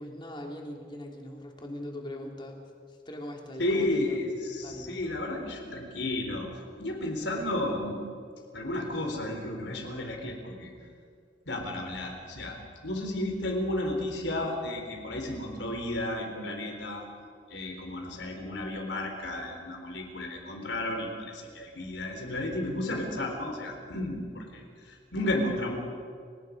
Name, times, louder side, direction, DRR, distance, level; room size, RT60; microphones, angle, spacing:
voice 1, 0.0-2.6 2.9-4.2 4.6-5.0, left 1 dB, 25° left, 1 dB, 2.9 m, -40 dB
voice 2, 3.6-6.5 6.8-8.0 8.5-10.7 11.5-12.6 12.8-17.1 17.5-25.7, left 1 dB, 75° left, 3 dB, 4.1 m, -33 dB
30.0 x 18.5 x 5.3 m, 2.2 s
head